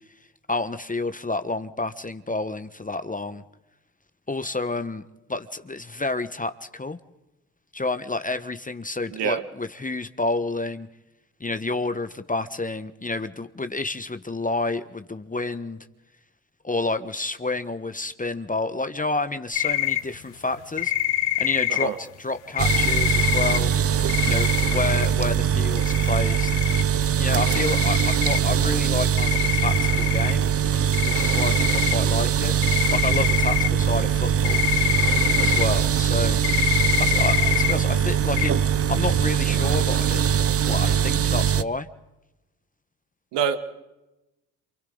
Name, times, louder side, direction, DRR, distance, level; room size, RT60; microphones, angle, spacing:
voice 1, 0.5-3.4 4.3-5.0 5.3-7.0 7.7-10.9 11.4-15.8 16.6-20.9 21.4-23.7 24.2-26.5 27.2-30.5 31.0-32.5 32.9-34.6 35.4-36.4 37.0-40.4 40.6-41.9, left 2 dB, 20° left, 10 dB, 1.3 m, -29 dB
voice 2, 9.1-9.4 21.7-22.0 43.3-43.6, right 8 dB, 70° right, 9 dB, 1.8 m, -25 dB
sound 1, 19.5-20.0 20.8-21.8 22.6-23.6 24.1-25.1 25.8-26.8 27.4-28.4 29.2-30.3 30.9-31.9 32.5-33.7 34.4-35.6 36.4-37.7 38.4-38.5, left 15 dB, 75° left, 1.3 m, -25 dB
sound 2, 22.6-41.6, right 8 dB, 35° right, 0.7 m, -22 dB
28.5 x 27.5 x 4.0 m, 0.98 s
hypercardioid pair, 50°, 43 cm